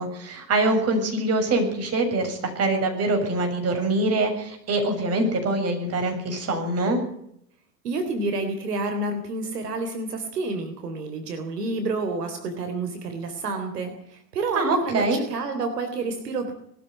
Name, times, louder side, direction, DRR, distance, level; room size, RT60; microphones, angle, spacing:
voice 1, 0.0-7.0 14.6-15.2, right 2 dB, 30° right, 4 dB, 7.1 m, -24 dB
voice 2, 7.8-16.5, right 3 dB, 70° right, 6 dB, 3.8 m, -29 dB
21.5 x 13.5 x 9.5 m, 0.72 s
figure-of-eight pair, 95°, 49 cm